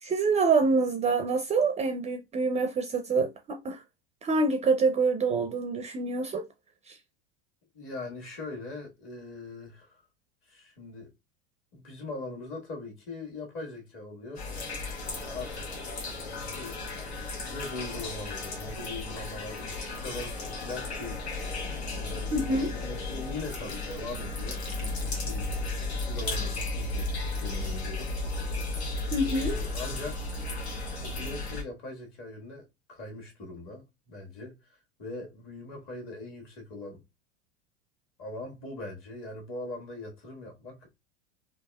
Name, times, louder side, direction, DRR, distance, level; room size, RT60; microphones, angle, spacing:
voice 1, 0.0-3.8 4.2-6.4 6.9-7.0 22.3-22.7 29.1-29.6, right 3 dB, 20° right, 0.4 m, -26 dB
voice 2, 7.7-10.0 10.5-11.1 11.7-14.8 15.1-15.7 16.3-16.8 17.4-21.3 22.0-25.5 25.9-27.1 27.4-28.1 29.1-30.4 31.0-34.5 35.0-37.0 38.2-40.9, left 2 dB, 40° left, 1.5 m, -41 dB
sound 1, 14.4-31.6, left 2 dB, 90° left, 1.0 m, -34 dB
3.4 x 2.4 x 2.2 m
hypercardioid pair, 95°, 32 cm